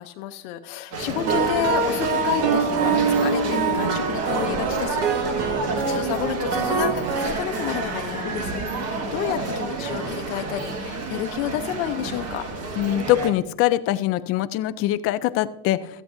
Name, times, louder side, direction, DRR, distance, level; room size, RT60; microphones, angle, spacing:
voice 1, 0.0-5.6 5.9-12.5, left 11 dB, 65° left, 6 dB, 0.9 m, -30 dB
sound 1, 0.9-13.3, right 3 dB, 35° right, 1.7 m, -29 dB
sound 2, 1.3-7.3, right 5 dB, 85° right, 2.3 m, -26 dB
sound 3, 2.4-5.1, right 6 dB, 55° right, 2.1 m, -26 dB
voice 2, 12.8-15.8, left 14 dB, 35° left, 14 dB, 0.4 m, -23 dB
16.5 x 14.0 x 2.6 m, 0.78 s
cardioid pair, 165°, 46 cm